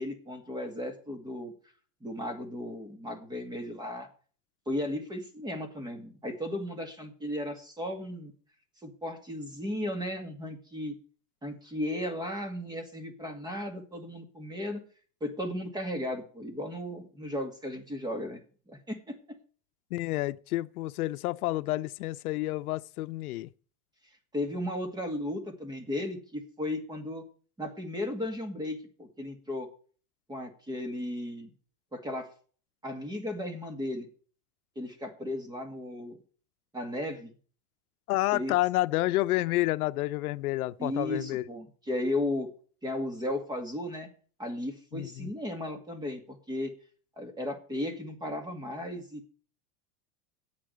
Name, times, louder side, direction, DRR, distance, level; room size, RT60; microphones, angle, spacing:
voice 1, 0.0-1.5 2.0-4.1 4.7-8.3 8.8-11.0 11.4-14.8 15.2-18.4 18.7-19.2 24.3-27.2 27.6-29.7 30.3-31.5 31.9-32.3 32.8-34.1 34.8-36.2 36.7-37.3 38.3-38.6 40.8-42.5 42.8-44.1 44.4-46.7 47.2-49.3, left 1 dB, 10° right, 2.1 m, -35 dB
voice 2, 19.9-23.5 38.1-41.4 44.9-45.3, left 17 dB, 85° left, 0.7 m, -29 dB
8.7 x 8.7 x 7.9 m
supercardioid pair, 150°, 43 cm